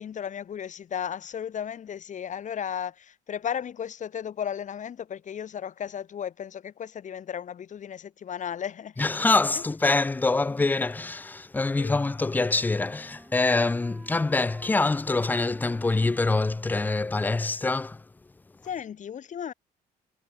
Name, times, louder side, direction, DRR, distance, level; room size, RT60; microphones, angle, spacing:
voice 1, 0.0-9.1 9.5-9.6 11.7-12.0 18.6-19.5, left 8 dB, 45° left, 4.5 m, -35 dB
voice 2, 9.0-18.0, left 3 dB, 10° left, 0.4 m, -25 dB
Wind instrument woodwind instrument, 11.6-17.5, right 1 dB, 5° right, 3.6 m, -52 dB
cardioid pair, 110°, 17 cm